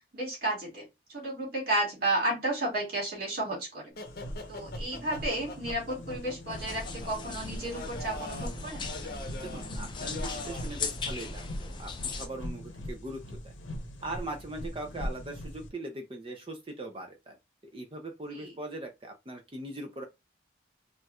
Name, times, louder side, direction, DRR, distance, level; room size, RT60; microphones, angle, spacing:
voice 1, 0.1-0.8 1.1-3.9 4.5-8.9 18.3-18.5, right 1 dB, 50° right, 2.2 m, -32 dB
sound 1, 3.9-10.8, left 2 dB, 50° left, 0.7 m, -44 dB
sound 2, 4.1-15.7, equal, 90° left, 0.8 m, -41 dB
sound 3, 6.5-12.3, left 4 dB, 25° left, 0.4 m, -38 dB
voice 2, 9.4-13.5 14.0-17.3 17.7-20.0, right 2 dB, 30° right, 0.5 m, -40 dB
4.4 x 2.4 x 2.3 m
head